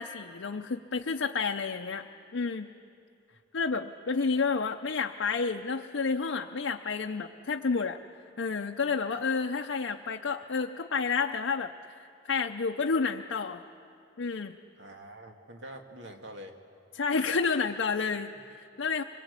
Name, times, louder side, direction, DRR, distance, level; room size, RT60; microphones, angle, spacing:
voice 1, 0.0-2.1 2.3-2.7 3.5-8.0 8.4-11.7 12.3-13.6 14.2-14.6 16.9-19.0, left 5 dB, 85° left, 3 dB, 0.6 m, -30 dB
voice 2, 14.7-16.6, right 1 dB, 75° right, 3 dB, 2.0 m, -45 dB
25.5 x 22.0 x 8.2 m, 2.6 s
head